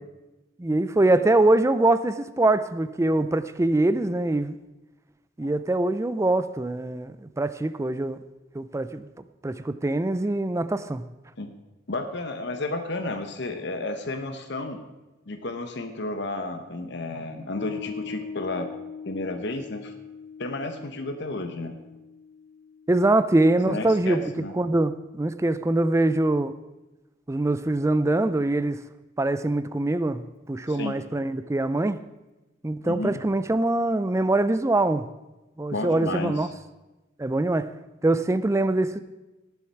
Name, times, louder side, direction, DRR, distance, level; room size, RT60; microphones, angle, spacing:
voice 1, 0.6-4.5 5.4-8.2 8.5-9.1 9.4-11.0 22.9-26.5 27.3-28.8 29.2-32.0 32.6-35.1 35.6-36.5 37.2-37.7 38.0-39.0, right 2 dB, 15° right, 0.4 m, -23 dB
voice 2, 11.9-14.8 15.3-18.7 19.1-19.9 20.4-21.7 23.7-24.5 30.7-30.9 32.8-33.1 35.7-36.5, left 2 dB, 60° left, 1.0 m, -32 dB
Piano, 17.6-24.3, left 6 dB, 80° left, 0.5 m, -41 dB
18.0 x 7.1 x 4.6 m
head